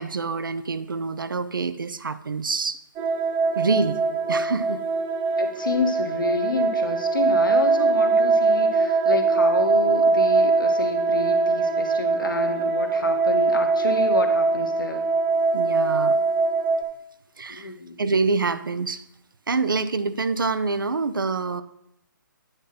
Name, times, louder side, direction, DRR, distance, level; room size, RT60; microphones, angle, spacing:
voice 1, 0.0-2.8 3.6-4.0 4.3-4.8 15.5-16.2 17.4-17.7 18.0-19.0 19.5-21.6, right 4 dB, 80° right, 12 dB, 0.6 m, -26 dB
sound 1, 3.0-16.8, right 3 dB, 20° right, 0.6 m, -22 dB
voice 2, 5.4-15.0 17.5-18.0, left 3 dB, 75° left, 5 dB, 1.2 m, -29 dB
9.0 x 3.7 x 5.8 m, 0.77 s
figure-of-eight pair, 140°, 11 cm